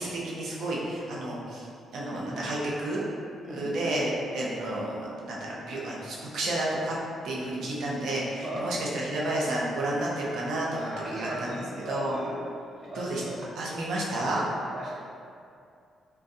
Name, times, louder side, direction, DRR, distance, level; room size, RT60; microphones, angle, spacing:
voice 1, 0.0-1.7 1.9-3.0 3.5-5.3 5.7-7.0 7.2-11.5 11.9-12.2 12.9-13.2 13.6-14.4, right 1 dB, 75° right, -5 dB, 0.6 m, -31 dB
voice 2, 3.4-3.9 8.4-8.7 10.7-12.4 12.8-13.4 14.7-14.9, equal, 40° right, -8 dB, 0.9 m, -37 dB
3.8 x 2.2 x 2.6 m, 2.4 s
cardioid pair, 115°, 0 cm